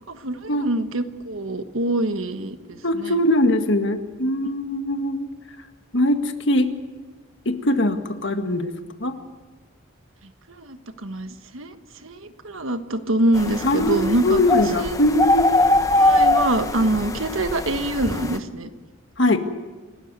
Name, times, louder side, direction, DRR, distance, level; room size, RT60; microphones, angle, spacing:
voice 1, 0.1-3.1 10.6-11.8 12.0-14.4 14.8-14.9 16.0-18.7 19.3-19.4, right 1 dB, 80° right, 9 dB, 1.4 m, -25 dB
voice 2, 2.8-5.3 5.9-6.7 7.5-8.7 9.0-9.1 13.6-15.6 19.2-19.4, left 1 dB, 65° left, 7 dB, 1.8 m, -21 dB
sound 1, 13.4-18.4, left 2 dB, 15° left, 1.1 m, -22 dB
28.5 x 13.0 x 8.1 m, 1.3 s
head